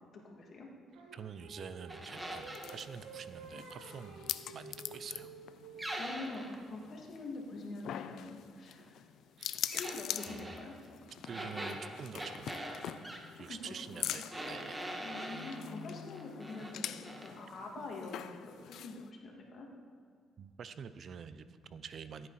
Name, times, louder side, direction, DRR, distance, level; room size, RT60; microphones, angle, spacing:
voice 1, 0.2-0.7 6.0-9.0 9.5-10.7 11.2-11.6 13.4-14.2 15.0-19.7, left 2 dB, 60° left, 0 dB, 2.5 m, -45 dB
Singing, 0.9-6.1, right 4 dB, 85° right, 1.6 m, -51 dB
voice 2, 1.1-5.3 9.4-9.6 11.2-12.8 13.4-14.9 20.4-22.3, right 6 dB, 60° right, 13 dB, 0.6 m, -47 dB
sound 1, 1.9-2.7 5.8-6.6 9.7-10.6 11.3-13.2 14.3-15.6 16.1-16.7 17.0-17.3, right 1 dB, 15° right, 1.9 m, -42 dB
sound 2, 2.1-19.1, left 10 dB, 75° left, 0.4 m, -44 dB
15.0 x 8.8 x 4.3 m, 2.1 s
supercardioid pair, 65°, 0 cm